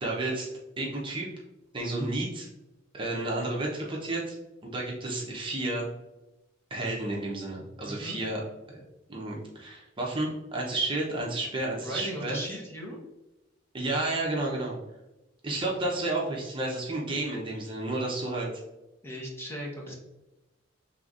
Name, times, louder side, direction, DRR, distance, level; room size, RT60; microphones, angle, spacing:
voice 1, 0.0-0.5 0.8-1.3 1.7-2.5 2.9-4.4 4.6-5.9 6.7-8.4 8.7-8.8 9.1-12.4 13.7-14.8 15.4-18.5, right 2 dB, 25° right, -2 dB, 0.8 m, -31 dB
voice 2, 7.8-8.2 11.8-13.0 19.0-19.9, equal, 10° left, -2 dB, 0.9 m, -37 dB
5.7 x 3.5 x 2.5 m, 1.0 s
head